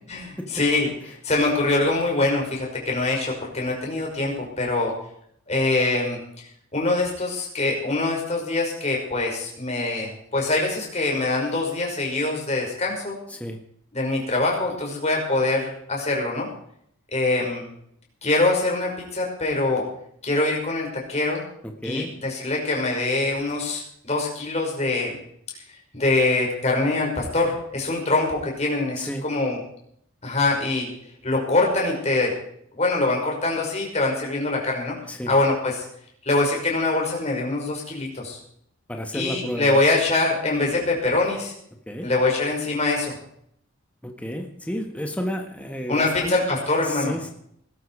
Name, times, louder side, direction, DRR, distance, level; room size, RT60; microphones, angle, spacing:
voice 1, 0.1-0.9 1.2-4.9 5.5-6.2 6.7-13.2 13.9-16.5 17.1-17.7 18.2-19.9 20.2-21.4 21.8-25.1 25.9-29.6 30.2-30.9 31.2-32.3 32.8-35.0 35.3-35.8 36.2-38.4 39.1-41.5 42.0-43.1 45.9-47.2, left 2 dB, 30° left, -1 dB, 5.6 m, -24 dB
voice 2, 38.9-39.8 41.9-42.1 44.0-46.3 46.8-47.3, equal, 5° left, 3 dB, 1.5 m, -31 dB
20.5 x 12.5 x 4.9 m, 0.69 s
head